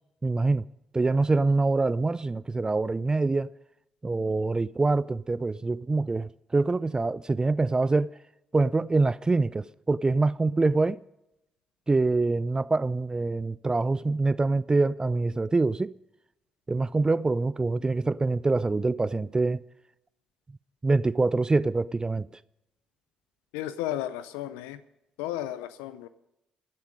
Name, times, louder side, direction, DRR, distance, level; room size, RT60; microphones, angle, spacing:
voice 1, 0.2-0.6 0.9-3.5 4.0-8.1 8.5-11.0 11.9-15.9 16.7-19.6 20.8-22.3, right 3 dB, 25° right, 0.4 m, -25 dB
voice 2, 23.5-24.8 25.2-26.1, left 12 dB, 80° left, 0.5 m, -33 dB
16.5 x 11.0 x 5.2 m
hypercardioid pair, 45°, 3 cm